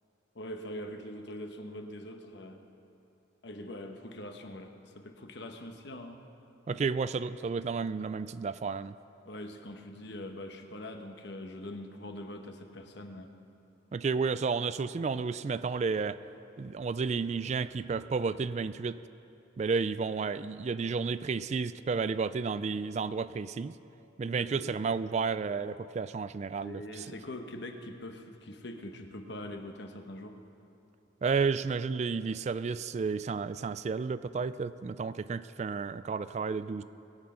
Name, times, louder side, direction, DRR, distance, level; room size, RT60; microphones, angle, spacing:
voice 1, 0.3-2.6 3.4-6.2 6.8-7.0 9.2-13.3 24.4-24.8 26.6-30.4, left 1 dB, 60° left, 5 dB, 1.1 m, -43 dB
voice 2, 6.7-9.0 13.9-16.2 16.6-19.0 19.6-23.7 24.2-27.1 31.2-36.8, right 5 dB, 35° right, 14 dB, 0.3 m, -32 dB
21.5 x 8.8 x 5.7 m, 2.8 s
head